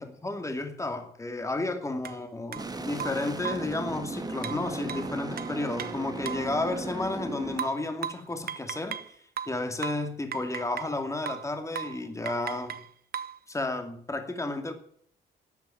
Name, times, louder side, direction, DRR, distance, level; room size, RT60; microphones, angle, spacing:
voice 1, 0.0-9.2 9.5-12.8 13.5-14.7, left 2 dB, 15° left, 6 dB, 2.5 m, -32 dB
sound 1, 2.0-2.2 2.5-2.7 3.0-3.7 4.4-6.5 7.6-9.1 9.4-11.0 11.3-11.5 11.7-12.0 12.3-13.4, right 8 dB, 50° right, 0.9 m, -37 dB
sound 2, 2.6-7.6, right 3 dB, 20° right, 1.9 m, -36 dB
13.0 x 8.9 x 10.0 m, 0.63 s
cardioid pair, 90°, 20 cm